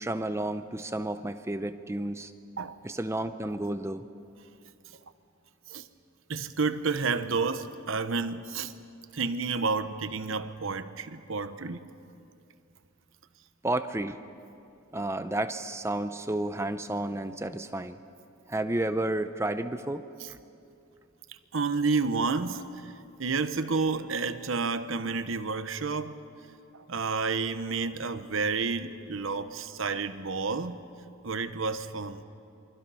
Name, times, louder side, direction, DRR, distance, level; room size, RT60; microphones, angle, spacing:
voice 1, 0.0-2.3 2.8-4.1 13.6-14.2 14.9-18.0 18.5-20.0, right 1 dB, 15° right, 0.6 m, -31 dB
voice 2, 6.3-8.7 9.1-11.9 21.3-22.9 23.2-26.2 26.7-30.8 31.2-32.2, right 4 dB, 70° right, 1.0 m, -30 dB
28.0 x 24.5 x 5.6 m
head